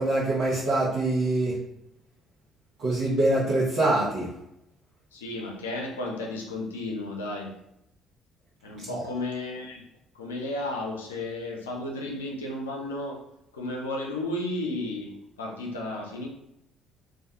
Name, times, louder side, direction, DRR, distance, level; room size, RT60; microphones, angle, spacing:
voice 1, 0.0-1.6 2.8-4.3 8.9-9.0, right 2 dB, 55° right, -9 dB, 0.8 m, -24 dB
voice 2, 5.1-7.5 8.6-9.8 10.2-13.2 13.5-16.3, left 2 dB, 85° left, 0 dB, 0.4 m, -33 dB
2.3 x 2.3 x 2.8 m, 0.83 s
figure-of-eight pair, 50°, 0 cm